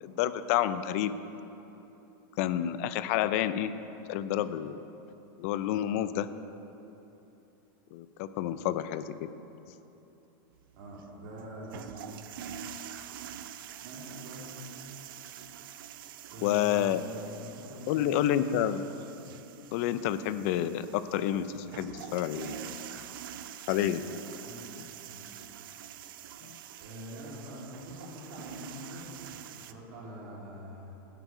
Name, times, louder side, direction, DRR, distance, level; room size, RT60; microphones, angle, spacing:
voice 1, 0.0-1.1 2.4-3.7 4.1-4.8 5.4-6.3 7.9-9.3 16.4-17.0 17.9-18.8 19.7-22.6 23.7-24.0, left 11 dB, 40° left, 13 dB, 0.4 m, -29 dB
sound 1, 10.6-29.7, right 9 dB, 70° right, 0.5 m, -46 dB
voice 2, 10.7-11.9 13.8-14.6 16.3-18.7 24.2-24.6 25.0-25.3 26.8-29.1 29.5-30.9, equal, 45° right, -3 dB, 2.4 m, -44 dB
11.0 x 8.1 x 5.5 m, 3.0 s
supercardioid pair, 175°, 12 cm